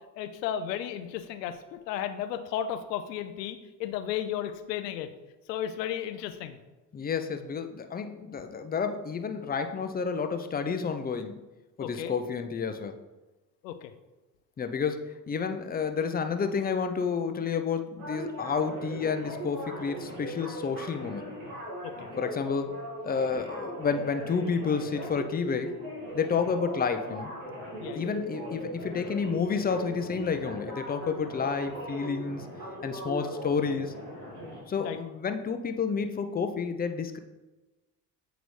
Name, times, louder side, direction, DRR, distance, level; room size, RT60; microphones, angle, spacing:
voice 1, 0.2-5.1 5.5-6.6 11.8-12.1 13.6-13.9 21.8-22.1 27.8-28.1 34.8-35.0, left 10 dB, 85° left, 8 dB, 0.6 m, -34 dB
voice 2, 6.9-11.4 11.8-13.0 14.6-21.3 22.2-22.7 23.0-25.7 26.1-27.3 28.0-32.4 32.8-33.9 34.7-37.2, left 5 dB, 20° left, 7 dB, 0.5 m, -30 dB
sound 1, 18.0-34.6, equal, 75° right, 2.0 m, -39 dB
8.0 x 3.9 x 3.2 m, 1.1 s
hypercardioid pair, 65°, 48 cm